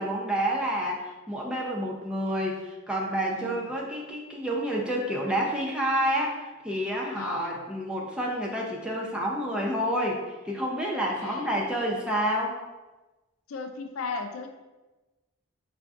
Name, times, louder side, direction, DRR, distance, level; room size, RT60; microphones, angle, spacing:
voice 1, 0.0-12.6, equal, 5° right, -3 dB, 0.4 m, -29 dB
voice 2, 3.3-3.7 7.1-7.6 11.2-11.6 13.5-14.5, left 4 dB, 85° left, 5 dB, 0.4 m, -36 dB
4.4 x 2.6 x 2.3 m, 1.1 s
head